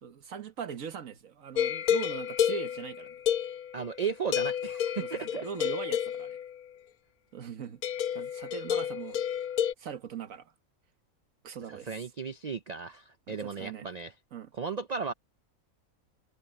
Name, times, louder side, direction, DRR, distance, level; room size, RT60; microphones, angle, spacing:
voice 1, 0.0-3.2 5.0-6.4 7.3-7.8 8.1-9.2 9.8-10.5 11.4-12.0 13.3-13.9 14.3-14.5, right 7 dB, 65° right, 1.6 m, -40 dB
sound 1, 1.6-4.0 4.3-6.6 7.8-9.7, left 9 dB, 80° left, 1.2 m, -30 dB
voice 2, 3.7-5.5 11.7-14.1 14.5-15.1, right 5 dB, 85° right, 0.3 m, -35 dB
omnidirectional pair, 1.5 m